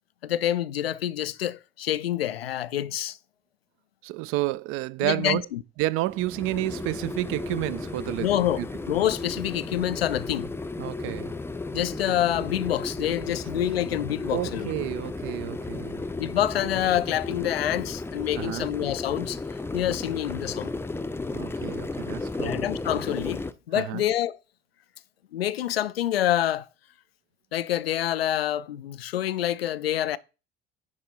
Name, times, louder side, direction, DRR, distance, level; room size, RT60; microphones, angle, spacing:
voice 1, 0.2-3.2 5.0-5.6 8.2-8.6 8.9-10.5 11.7-14.7 16.2-19.4 19.7-20.7 22.4-24.4 25.3-26.7 27.5-30.2, left 12 dB, 80° left, 0.5 m, -27 dB
voice 2, 4.0-5.4 5.8-8.3 8.6-8.7 10.8-11.4 14.3-16.1 18.4-18.7 21.3-22.7 23.7-24.0, right 18 dB, 45° right, 0.5 m, -30 dB
sound 1, 6.1-23.5, left 3 dB, 10° left, 0.6 m, -34 dB
9.6 x 4.3 x 4.2 m
figure-of-eight pair, 60°, 30 cm